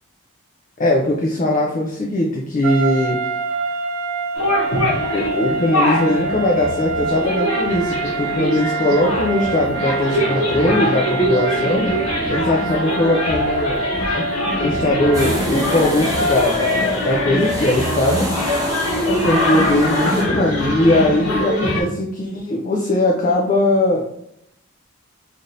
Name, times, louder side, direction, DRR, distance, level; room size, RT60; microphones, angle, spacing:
voice 1, 0.8-3.2 5.1-11.9 12.3-14.2 14.6-18.3 19.1-24.0, left 1 dB, 35° left, -1 dB, 0.4 m, -20 dB
sound 1, 2.6-15.5, right 3 dB, 70° right, 0.3 m, -26 dB
sound 2, 4.3-21.8, left 1 dB, 65° left, 1.0 m, -23 dB
sound 3, 15.1-20.2, right 1 dB, 15° right, 0.6 m, -29 dB
3.2 x 2.5 x 2.6 m, 0.74 s
head